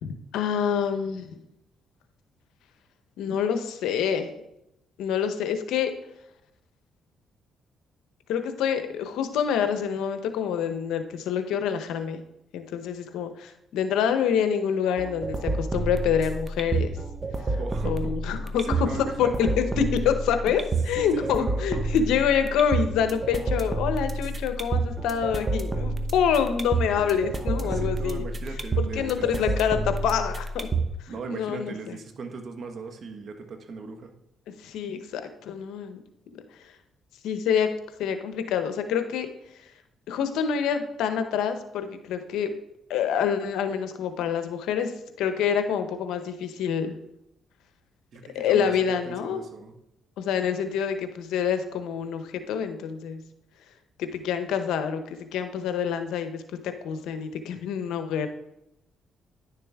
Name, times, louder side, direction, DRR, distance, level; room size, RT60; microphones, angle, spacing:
voice 1, 0.0-1.4 3.2-4.3 5.0-5.9 8.3-12.2 12.5-16.9 17.5-17.6 17.8-18.8 19.2-28.2 28.9-30.7 31.0-32.0 34.6-36.0 36.6-36.7 37.2-37.7 38.0-39.3 39.6-39.7 40.1-42.5 42.9-47.0 48.3-49.4 50.2-53.2 54.0-58.3, left 7 dB, 85° left, 8 dB, 0.8 m, -27 dB
sound 1, 15.0-31.0, right 3 dB, 30° right, 0.8 m, -29 dB
voice 2, 17.6-18.2 18.6-19.6 20.9-21.9 27.6-29.4 31.1-34.1 48.1-49.8, right 4 dB, 55° right, 6 dB, 1.2 m, -38 dB
10.0 x 6.8 x 3.5 m, 0.82 s
cardioid pair, 90°, 0 cm